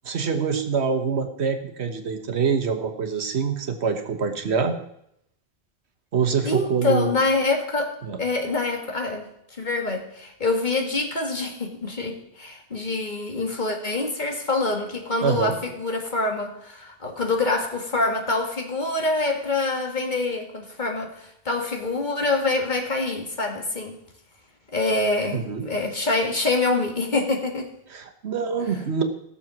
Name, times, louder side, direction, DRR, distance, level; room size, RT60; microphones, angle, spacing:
voice 1, 0.0-4.8 6.1-7.1 8.0-8.2 15.2-15.6 25.3-25.7 27.9-29.0, right 6 dB, 80° right, 6 dB, 1.5 m, -25 dB
voice 2, 6.4-9.3 9.6-24.0 24.7-27.7, left 3 dB, 45° left, 2 dB, 2.0 m, -25 dB
16.0 x 7.0 x 6.1 m, 0.76 s
omnidirectional pair, 1.1 m